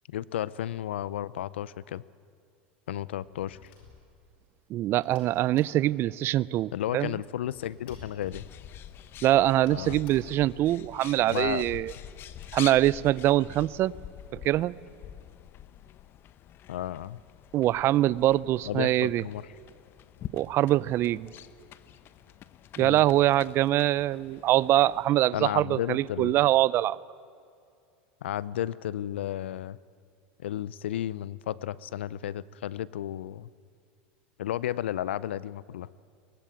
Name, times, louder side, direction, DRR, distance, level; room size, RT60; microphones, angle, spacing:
voice 1, 0.1-2.0 2.9-3.7 6.7-8.4 9.7-10.0 11.3-11.6 16.7-17.2 18.6-19.5 22.8-23.0 25.3-26.3 28.2-29.8 30.4-33.5 34.4-35.9, left 12 dB, 90° left, 20 dB, 0.6 m, -33 dB
sound 1, 3.2-4.5 5.0-6.3 6.5-6.6 6.8-9.1 9.6-10.6 11.0-11.1 11.3-11.4 11.9-12.5, left 5 dB, 70° left, 5.1 m, -53 dB
voice 2, 4.7-7.1 9.2-11.9 12.5-13.9 14.3-14.7 17.5-19.2 20.3-21.3 22.8-27.0, right 14 dB, 40° right, 21 dB, 0.5 m, -24 dB
Bird, 8.3-25.1, left 11 dB, 40° left, 0.9 m, -46 dB
23.0 x 19.5 x 8.9 m, 2.4 s
supercardioid pair, 115°, 6 cm